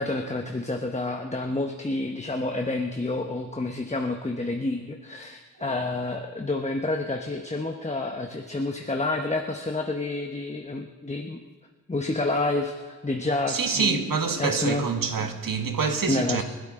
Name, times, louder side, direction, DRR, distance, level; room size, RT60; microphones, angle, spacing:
voice 1, 0.0-11.4 11.9-14.0 14.4-14.8 15.1-15.2 16.1-16.4, left 2 dB, 20° left, 1.0 m, -29 dB
voice 2, 13.5-16.4, right 5 dB, 80° right, 1.5 m, -26 dB
29.5 x 12.5 x 3.7 m
wide cardioid pair, 125°, 33 cm